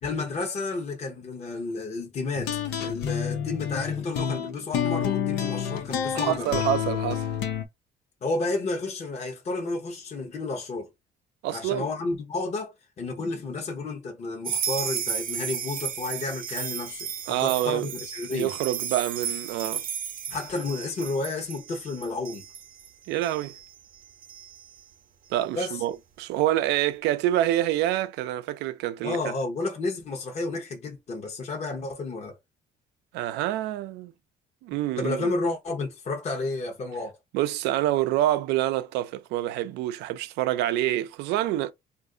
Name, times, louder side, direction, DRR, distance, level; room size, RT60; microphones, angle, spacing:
voice 1, 0.0-6.6 8.2-10.9 11.5-18.6 20.3-22.4 25.5-25.8 29.0-32.4 35.0-37.2, left 3 dB, 40° left, 0.9 m, -31 dB
sound 1, 2.3-7.6, left 8 dB, 90° left, 0.6 m, -29 dB
voice 2, 6.1-7.3 11.4-11.9 17.3-17.9 18.3-19.8 23.1-23.5 25.3-29.2 33.1-34.1 34.6-35.3 37.3-41.7, right 13 dB, 90° right, 0.4 m, -27 dB
sound 2, 14.4-24.8, right 8 dB, 55° right, 0.7 m, -34 dB
2.5 x 2.4 x 3.7 m
cardioid pair, 110°, 17 cm